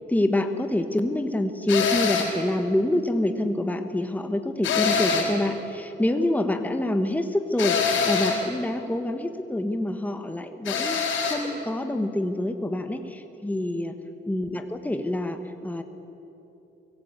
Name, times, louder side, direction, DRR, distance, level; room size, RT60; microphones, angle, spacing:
voice 1, 0.1-13.9 14.3-15.8, left 1 dB, 10° left, 7 dB, 1.4 m, -26 dB
sound 1, 1.7-2.4 4.6-5.4 7.6-8.4 10.6-11.4, left 5 dB, 80° left, 4.4 m, -24 dB
23.5 x 17.0 x 8.3 m, 2.9 s
cardioid pair, 90°, 20 cm